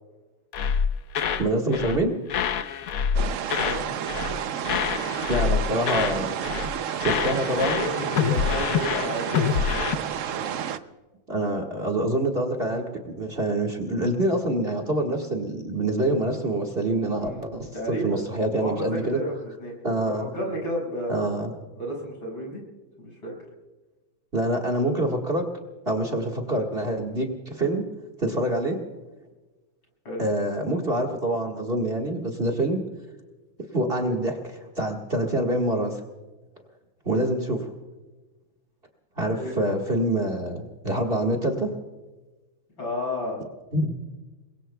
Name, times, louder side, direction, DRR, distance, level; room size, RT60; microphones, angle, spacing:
sound 1, 0.5-2.0 2.3-4.4 4.6-6.2 6.4-6.7 7.0-10.0, left 7 dB, 60° left, 1.0 m, -26 dB
voice 1, 1.4-2.1 5.3-6.3 7.0-7.8 11.3-19.2 19.8-20.3 21.1-21.5 24.3-25.5 25.9-27.9 28.2-28.8 30.2-32.8 33.7-36.0 37.0-37.7 39.2-41.7 43.7-43.9, right 1 dB, 30° right, 3 dB, 1.8 m, -26 dB
sound 2, 3.1-10.8, right 8 dB, 70° right, 0.7 m, -30 dB
voice 2, 3.5-3.9 7.5-9.6 17.2-18.2 18.6-19.8 20.2-21.2 21.8-22.6 23.0-23.3 30.1-30.2 39.3-39.5 42.8-43.4, equal, 80° left, -2 dB, 7.1 m, -32 dB
28.5 x 22.0 x 2.3 m, 1.2 s
omnidirectional pair, 2.1 m